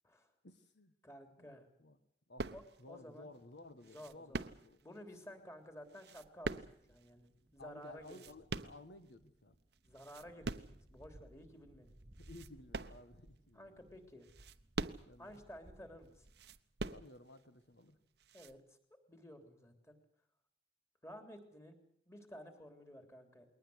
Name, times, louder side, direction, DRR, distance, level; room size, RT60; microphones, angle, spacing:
voice 1, 0.4-0.9 1.4-2.0 2.3-2.5 2.8-4.8 7.6-9.5 12.2-14.0 15.1-15.4 16.9-18.0, left 2 dB, 75° left, 10 dB, 1.4 m, -56 dB
voice 2, 1.0-1.7 2.5-2.6 2.9-3.3 3.9-4.4 4.8-8.1 9.8-11.9 13.5-14.3 15.2-16.3 18.3-18.6 19.1-20.0 21.0-21.8 22.1-23.5, equal, 15° left, 6 dB, 3.4 m, -53 dB
sound 1, 2.4-3.0 3.8-5.0 5.9-7.1 7.8-9.2 9.7-10.9 11.4-11.5 12.1-13.5 14.2-15.4 16.3-17.4 18.2-18.6, right 3 dB, 65° right, 0.8 m, -43 dB
sound 2, 6.7-16.6, right 1 dB, 30° right, 1.1 m, -63 dB
21.5 x 19.0 x 8.0 m, 0.68 s
head